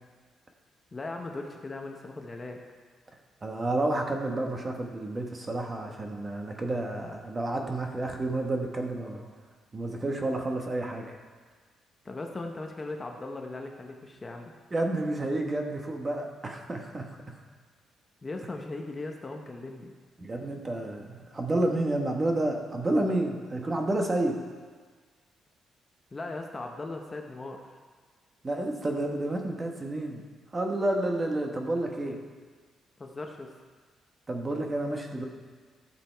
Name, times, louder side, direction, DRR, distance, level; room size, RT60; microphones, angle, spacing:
voice 1, 0.9-2.6 12.0-14.5 18.2-19.9 26.1-27.7 33.0-33.5, left 2 dB, 20° left, 2 dB, 0.8 m, -38 dB
voice 2, 3.4-9.3 9.7-11.0 14.7-17.4 20.2-24.4 28.4-30.2 30.5-32.2 34.3-35.3, right 2 dB, 20° right, 3 dB, 1.0 m, -30 dB
15.0 x 6.8 x 4.5 m, 1.5 s
cardioid pair, 150°, 0 cm